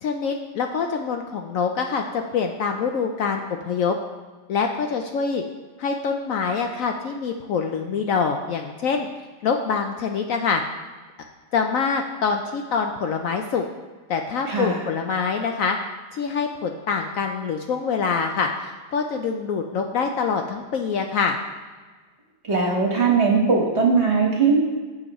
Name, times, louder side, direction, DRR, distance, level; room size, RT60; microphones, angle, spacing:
voice 1, 0.0-4.0 4.5-5.4 5.8-9.1 9.4-10.6 11.5-13.7 14.1-15.8 16.1-21.4, left 5 dB, 70° left, 4 dB, 0.9 m, -25 dB
voice 2, 14.5-14.8 22.4-24.6, right 4 dB, 45° right, 0 dB, 1.5 m, -20 dB
15.5 x 5.2 x 3.0 m, 1.4 s
omnidirectional pair, 1.7 m